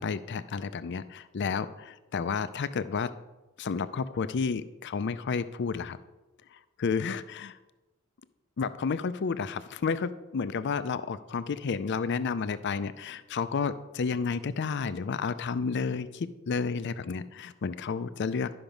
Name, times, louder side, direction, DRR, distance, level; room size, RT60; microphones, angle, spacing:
voice 1, 0.0-3.1 3.6-6.0 6.5-7.6 8.6-18.5, left 5 dB, 55° left, 13 dB, 0.4 m, -31 dB
11.5 x 5.9 x 5.2 m, 1.1 s
head